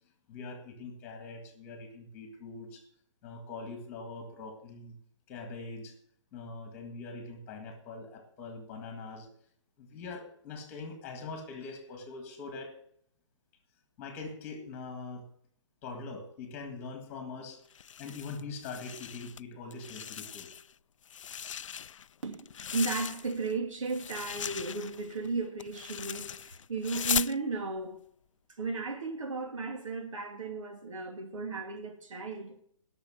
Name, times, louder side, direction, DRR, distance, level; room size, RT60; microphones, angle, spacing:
voice 1, 0.3-2.8 3.2-5.0 5.3-5.9 6.3-9.3 9.8-12.7 14.0-15.3 15.8-17.6 18.0-20.5, left 4 dB, 10° left, 1.7 m, -43 dB
sound 1, 17.7-19.4 19.7-20.7 21.0-23.5 23.9-27.4, left 8 dB, 75° left, 0.4 m, -38 dB
voice 2, 22.2-28.0 28.6-32.5, right 3 dB, 80° right, 3.0 m, -35 dB
17.0 x 6.7 x 6.4 m
hypercardioid pair, 180°, 16 cm